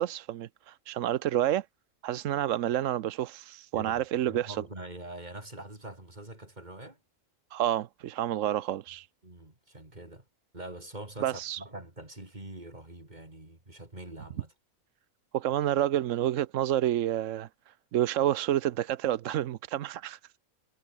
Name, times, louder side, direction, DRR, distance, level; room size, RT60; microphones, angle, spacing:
voice 1, 0.0-1.7 2.0-4.6 7.5-9.1 11.2-11.6 15.3-20.4, right 12 dB, 65° right, 1.0 m, -29 dB
voice 2, 3.7-7.0 9.2-10.2 10.5-14.5, right 1 dB, 30° right, 4.4 m, -44 dB
omnidirectional pair, 1.5 m